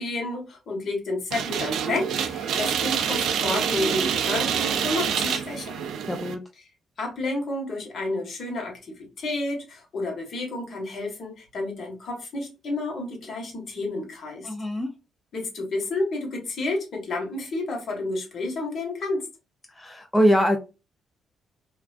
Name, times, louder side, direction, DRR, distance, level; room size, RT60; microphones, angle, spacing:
voice 1, 0.0-5.8 7.0-14.5 15.3-19.3, left 2 dB, 55° left, 1.1 m, -30 dB
sound 1, 1.3-6.3, right 8 dB, 75° right, 0.3 m, -26 dB
voice 2, 6.1-6.4 14.4-14.9 19.8-20.6, equal, 10° left, 0.4 m, -22 dB
2.4 x 2.2 x 2.4 m
cardioid pair, 90°, 0 cm